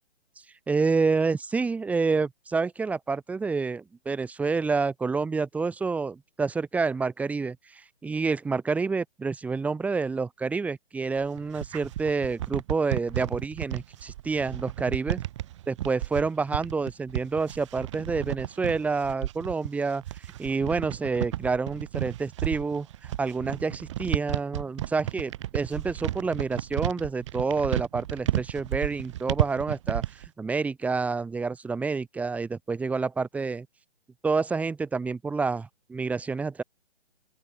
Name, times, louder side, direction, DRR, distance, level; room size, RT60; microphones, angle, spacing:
voice 1, 0.7-15.2 15.7-20.0 20.4-30.0 30.4-33.7 34.2-36.6, right 4 dB, 5° right, 4.0 m, -28 dB
sound 1, 11.2-30.3, right 13 dB, 30° right, 2.3 m, -32 dB
open air
hypercardioid pair, 160°, 33 cm